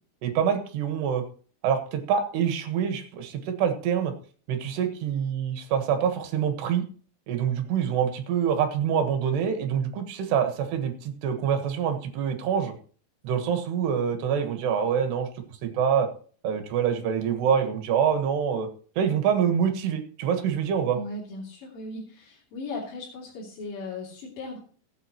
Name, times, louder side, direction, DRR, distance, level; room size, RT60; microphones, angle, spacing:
voice 1, 0.2-1.2 1.6-4.1 4.5-6.9 7.3-12.7 13.2-15.3 15.6-16.1 16.4-18.7 19.0-21.0, right 8 dB, 75° right, 6 dB, 3.4 m, -25 dB
voice 2, 20.9-24.6, left 2 dB, 55° left, -6 dB, 4.3 m, -37 dB
18.5 x 9.0 x 3.0 m, 0.43 s
omnidirectional pair, 5.1 m